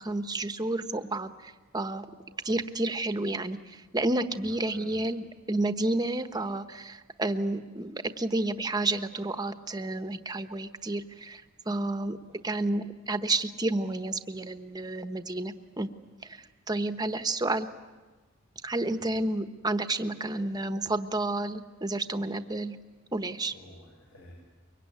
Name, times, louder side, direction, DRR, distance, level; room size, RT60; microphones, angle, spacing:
voice 1, 0.0-2.1 2.4-12.2 12.4-15.9 16.2-17.7 18.6-22.8 23.1-23.5, right 2 dB, 20° right, 9 dB, 1.1 m, -30 dB
voice 2, 4.3-5.0 12.3-12.4 19.0-19.1 23.5-24.3, left 1 dB, 90° left, -2 dB, 7.1 m, -52 dB
24.5 x 23.5 x 9.5 m, 1.3 s
head